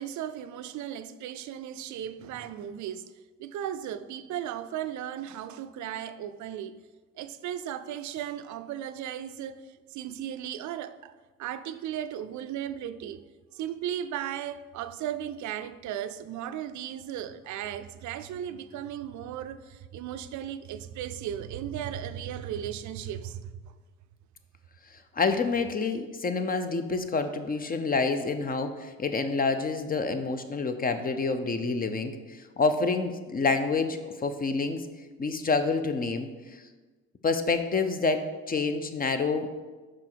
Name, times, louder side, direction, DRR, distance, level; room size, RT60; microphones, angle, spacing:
voice 1, 0.0-3.1 3.4-6.8 7.2-11.1 11.4-13.2 13.5-23.7, right 10 dB, 75° right, 0.4 m, -36 dB
voice 2, 25.2-34.8 35.2-36.3 37.2-39.5, left 4 dB, 30° left, 0.6 m, -28 dB
6.1 x 4.9 x 4.5 m
cardioid pair, 90°, 30 cm